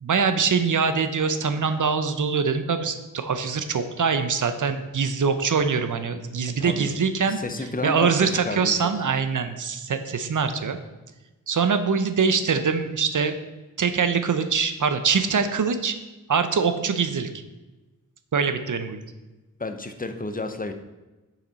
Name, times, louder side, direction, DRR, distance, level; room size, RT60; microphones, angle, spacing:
voice 1, 0.0-7.4 7.8-10.8 11.5-13.3 13.8-16.0 16.3-17.3 18.3-19.0, right 5 dB, 60° right, 9 dB, 0.7 m, -23 dB
voice 2, 7.4-8.1 8.4-8.7 19.6-20.7, left 3 dB, 25° left, 7 dB, 0.6 m, -30 dB
7.1 x 5.8 x 4.0 m, 1.1 s
wide cardioid pair, 90°, 35 cm